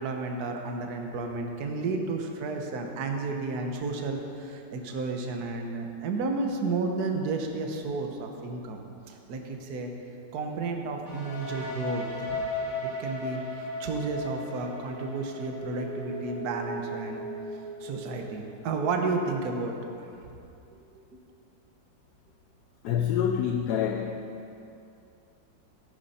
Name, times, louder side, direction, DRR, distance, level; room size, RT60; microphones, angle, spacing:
voice 1, 0.0-9.9 10.3-12.5 12.8-17.2 17.8-20.4 20.8-20.9, right 3 dB, 55° right, 3 dB, 1.5 m, -32 dB
sound 1, 11.0-18.8, left 1 dB, 20° left, 3.0 m, -36 dB
voice 2, 22.8-24.3, left 8 dB, 70° left, 5 dB, 1.0 m, -27 dB
14.5 x 10.5 x 4.3 m, 2.6 s
omnidirectional pair, 2.1 m